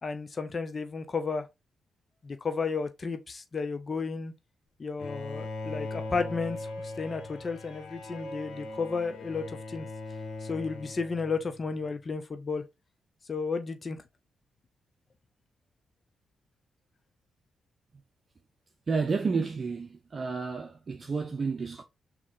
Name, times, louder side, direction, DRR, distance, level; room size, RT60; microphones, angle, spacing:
voice 1, 0.0-1.5 2.2-4.3 4.8-9.9 10.4-12.6 13.3-14.0, left 4 dB, 45° left, 0.7 m, -33 dB
Bowed string instrument, 5.0-11.8, left 2 dB, 75° left, 1.0 m, -40 dB
voice 2, 18.9-21.8, right 4 dB, 50° right, 0.6 m, -31 dB
3.7 x 3.0 x 3.8 m
supercardioid pair, 50°, 0 cm